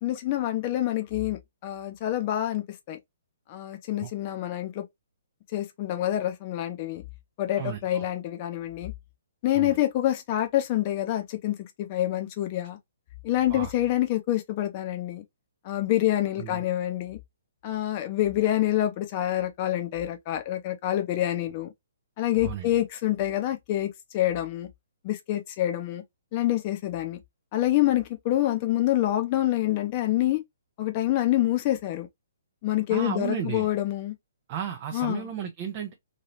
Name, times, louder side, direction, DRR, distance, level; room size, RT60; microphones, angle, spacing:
voice 1, 0.0-3.0 3.5-4.8 5.5-7.0 7.4-8.9 9.4-12.8 13.2-15.2 15.6-17.2 17.6-21.7 22.2-24.7 25.0-26.0 26.3-27.2 27.5-30.4 30.8-32.1 32.6-34.1 34.9-35.3, left 14 dB, 30° left, 0.7 m, -27 dB
voice 2, 7.6-8.1 9.5-9.8 13.5-13.7 16.4-16.6 22.4-22.7 32.9-33.7 34.5-35.9, right 9 dB, 30° right, 0.6 m, -34 dB
3.0 x 2.8 x 2.7 m
figure-of-eight pair, 125°, 0 cm